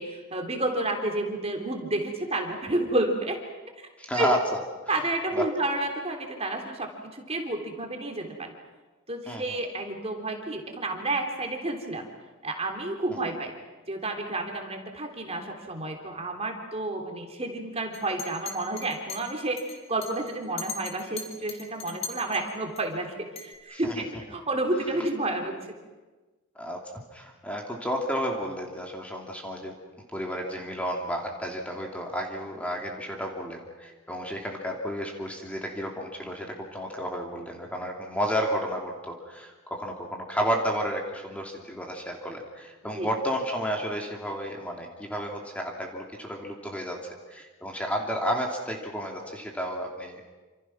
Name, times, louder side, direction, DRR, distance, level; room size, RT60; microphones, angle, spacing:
voice 1, 0.0-3.4 4.1-4.4 4.9-8.5 9.1-12.0 12.4-13.5 13.9-19.6 19.9-25.6 42.8-43.1, right 2 dB, 30° right, 3 dB, 3.4 m, -30 dB
voice 2, 4.0-4.4 5.3-5.5 9.3-9.6 23.7-23.9 26.6-26.8 27.1-29.7 30.1-47.0 47.3-50.3, equal, 5° left, 0 dB, 2.8 m, -32 dB
Chink clink, 17.9-22.8 23.4-23.5, left 5 dB, 30° left, 3.9 m, -39 dB
28.0 x 27.0 x 6.1 m, 1.2 s
head